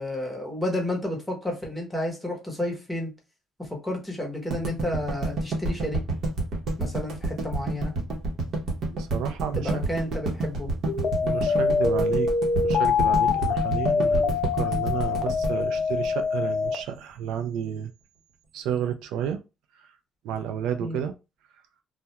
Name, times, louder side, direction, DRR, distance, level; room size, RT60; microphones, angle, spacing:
voice 1, 0.0-3.1 3.6-6.0 6.8-7.9 9.5-10.7 20.8-21.0, left 1 dB, 5° left, 0.8 m, -31 dB
sound 1, 4.5-16.7, right 2 dB, 55° right, 0.8 m, -28 dB
voice 2, 8.9-9.7 11.2-12.3 12.6-17.9 18.5-19.4 20.2-21.1, right 9 dB, 90° right, 0.4 m, -31 dB
sound 2, 10.9-16.8, left 5 dB, 50° left, 0.4 m, -24 dB
2.3 x 2.1 x 2.8 m
cardioid pair, 135°, 0 cm